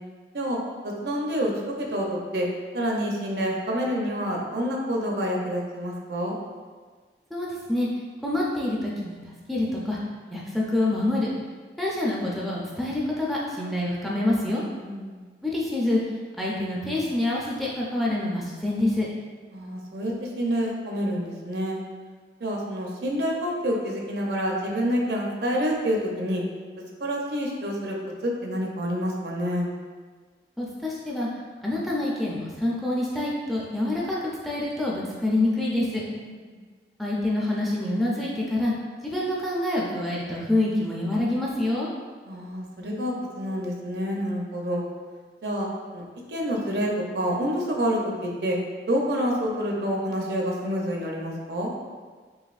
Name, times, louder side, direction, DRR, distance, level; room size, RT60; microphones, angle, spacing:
voice 1, 0.8-2.5 2.7-6.4 14.8-15.2 19.5-21.8 22.4-26.4 27.0-28.0 28.2-29.7 36.2-36.6 42.2-44.8 45.4-48.6 48.9-51.7, equal, 70° right, -1 dB, 0.6 m, -28 dB
voice 2, 7.3-7.9 8.2-10.0 10.3-11.3 11.8-14.6 15.4-16.0 16.4-19.1 30.6-31.3 31.6-34.2 34.4-36.0 37.0-38.7 39.0-41.9, left 1 dB, ahead, -5 dB, 0.4 m, -26 dB
4.0 x 3.1 x 2.4 m, 1.5 s
head